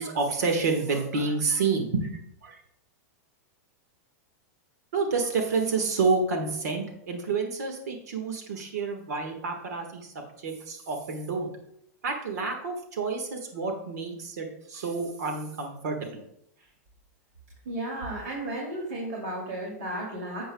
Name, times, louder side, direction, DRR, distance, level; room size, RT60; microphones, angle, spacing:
voice 1, 0.0-2.6 4.9-10.1 10.4-11.5 12.0-16.2, right 4 dB, 85° right, 4 dB, 1.6 m, -29 dB
voice 2, 17.6-20.5, right 1 dB, 60° right, -2 dB, 2.7 m, -34 dB
11.0 x 7.8 x 2.3 m, 0.77 s
supercardioid pair, 160°, 9 cm